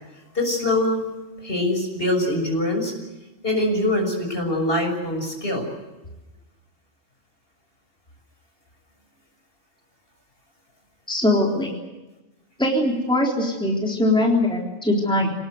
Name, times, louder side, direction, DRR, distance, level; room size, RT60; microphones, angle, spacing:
voice 1, 0.3-1.0 1.4-2.9 3.4-5.7, left 1 dB, 50° left, 3 dB, 6.7 m, -23 dB
voice 2, 11.1-11.7 12.6-15.3, left 1 dB, 5° left, -1 dB, 3.7 m, -21 dB
27.5 x 19.0 x 8.0 m, 1.1 s
omnidirectional pair, 1.3 m